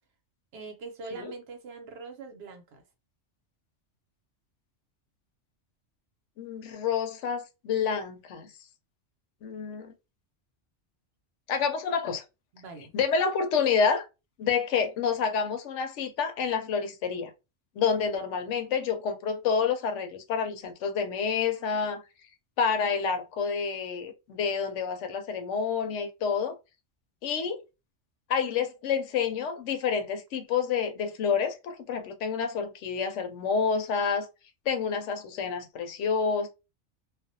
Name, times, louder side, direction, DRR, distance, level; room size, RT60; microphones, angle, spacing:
voice 1, 0.5-2.8 12.5-12.9, right 4 dB, 65° right, 0.8 m, -42 dB
voice 2, 6.4-8.5 9.4-9.9 11.5-12.2 12.9-14.1 14.4-17.3 17.8-22.0 22.6-26.5 27.2-27.6 28.3-34.3 34.7-36.5, left 6 dB, 85° left, 0.9 m, -28 dB
2.4 x 2.0 x 2.6 m
omnidirectional pair, 1.2 m